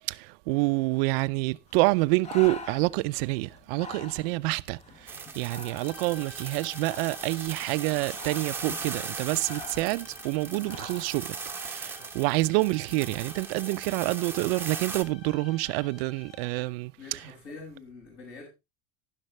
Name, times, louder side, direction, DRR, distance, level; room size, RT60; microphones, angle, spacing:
voice 1, 0.1-11.3 11.6-17.2, right 23 dB, 60° right, 0.5 m, -27 dB
Breathing, 1.7-11.2, left 4 dB, 20° left, 0.9 m, -46 dB
sound 1, 5.1-15.0, right 5 dB, 5° right, 1.0 m, -39 dB
sound 2, 5.7-16.8, left 7 dB, 65° left, 7.9 m, -51 dB
voice 2, 17.0-18.5, left 3 dB, 45° left, 6.6 m, -45 dB
12.0 x 10.5 x 3.2 m
supercardioid pair, 150°, 34 cm